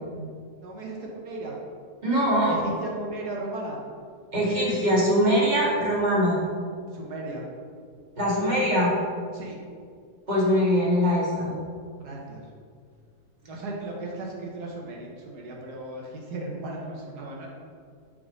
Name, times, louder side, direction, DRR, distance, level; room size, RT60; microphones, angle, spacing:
voice 1, 0.6-1.6 2.5-3.8 6.9-7.4 9.3-9.6 12.0-12.4 13.4-17.5, right 2 dB, 70° right, -1 dB, 1.5 m, -36 dB
voice 2, 2.0-2.5 4.3-6.4 8.2-8.9 10.3-11.5, equal, 25° right, -6 dB, 1.6 m, -22 dB
6.5 x 3.8 x 5.3 m, 2.1 s
omnidirectional pair, 1.8 m